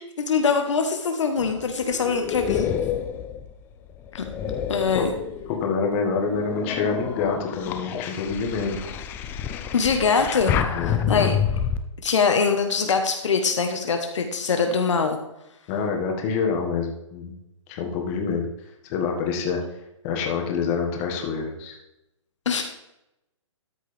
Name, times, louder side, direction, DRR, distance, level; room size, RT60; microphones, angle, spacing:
voice 1, 0.0-2.7 4.1-4.2 4.7-5.1 9.7-10.5 11.1-11.3 12.0-15.2 22.4-22.6, left 5 dB, 65° left, 5 dB, 1.3 m, -23 dB
sound 1, 1.4-5.6 6.1-11.8, left 8 dB, 15° left, 0.4 m, -29 dB
voice 2, 5.5-8.8 10.7-11.3 15.7-17.4 17.7-18.5 18.8-19.6 20.0-21.8, left 5 dB, 30° left, 1 dB, 1.8 m, -26 dB
13.0 x 6.5 x 3.5 m, 0.88 s
hypercardioid pair, 145°, 16 cm